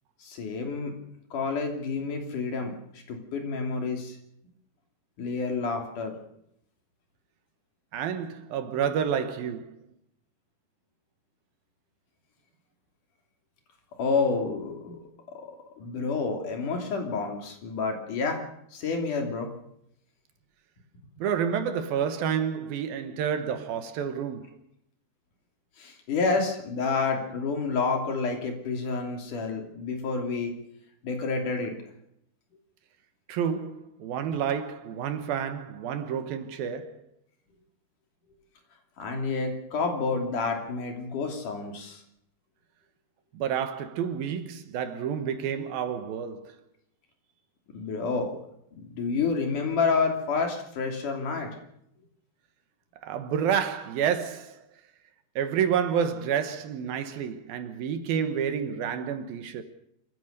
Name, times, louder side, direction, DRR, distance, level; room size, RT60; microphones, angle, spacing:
voice 1, 0.2-1.0 1.3-2.7 3.1-4.2 5.2-6.1 14.0-15.0 15.3-15.5 15.8-18.4 18.7-19.5 25.8-30.5 31.0-31.7 39.0-42.0 47.7-48.4 48.8-51.6, left 4 dB, 60° left, 4.3 m, -29 dB
voice 2, 7.9-9.8 21.2-24.6 33.3-37.0 43.3-46.6 53.0-54.6 55.4-59.6, right 8 dB, 75° right, 3.1 m, -29 dB
26.5 x 15.0 x 6.7 m
omnidirectional pair, 4.3 m